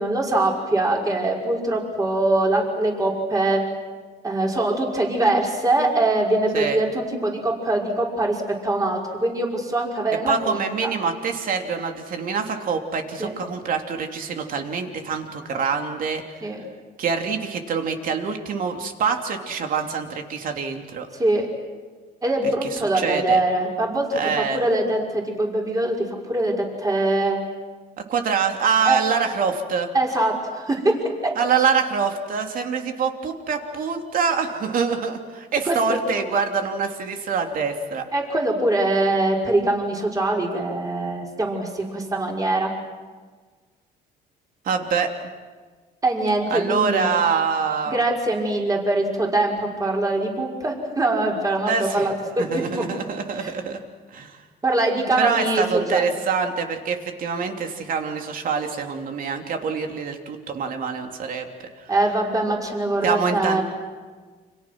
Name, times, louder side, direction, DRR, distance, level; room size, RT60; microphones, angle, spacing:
voice 1, 0.0-3.6 4.2-10.9 13.2-13.3 16.4-16.6 21.1-21.5 22.2-27.4 28.9-29.0 29.9-31.0 31.2-31.3 35.6-36.0 38.1-42.7 46.0-47.1 47.9-52.4 52.7-52.8 53.4-53.5 54.6-55.6 55.9-56.0 61.9-63.6, right 2 dB, 20° right, -1 dB, 5.7 m, -23 dB
voice 2, 10.3-16.2 17.0-21.1 22.6-23.4 24.1-24.6 28.0-29.9 31.3-38.0 44.6-45.1 46.5-48.0 51.7-52.1 52.4-53.8 54.1-54.4 55.2-61.5 61.8-61.9 63.0-63.6, right 5 dB, 55° right, 4 dB, 3.2 m, -25 dB
29.5 x 27.0 x 6.2 m, 1.4 s
cardioid pair, 110°, 17 cm